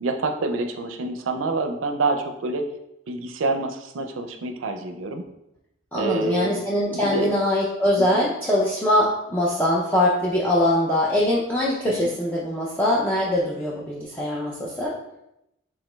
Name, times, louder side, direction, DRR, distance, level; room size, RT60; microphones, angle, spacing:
voice 1, 0.0-2.6 3.1-5.2 5.9-6.5 6.9-7.3 11.8-12.1, right 3 dB, 75° right, 6 dB, 0.4 m, -27 dB
voice 2, 5.9-14.9, left 1 dB, 10° left, -5 dB, 0.4 m, -22 dB
4.9 x 3.7 x 2.2 m, 0.86 s
head